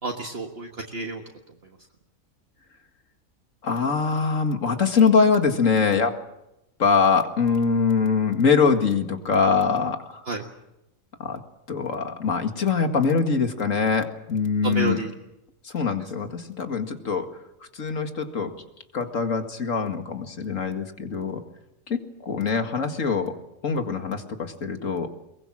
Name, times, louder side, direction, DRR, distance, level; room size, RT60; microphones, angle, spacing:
voice 1, 0.0-1.2 10.3-10.4 14.6-15.1, right 3 dB, 50° right, 1 dB, 1.8 m, -29 dB
voice 2, 3.6-6.2 6.8-10.2 11.2-11.4 11.7-15.0 15.6-17.3 17.7-18.5 18.9-21.4 21.9-23.3 23.6-25.1, left 5 dB, 75° left, 6 dB, 2.4 m, -23 dB
23.0 x 21.0 x 7.5 m, 0.89 s
omnidirectional pair, 1.4 m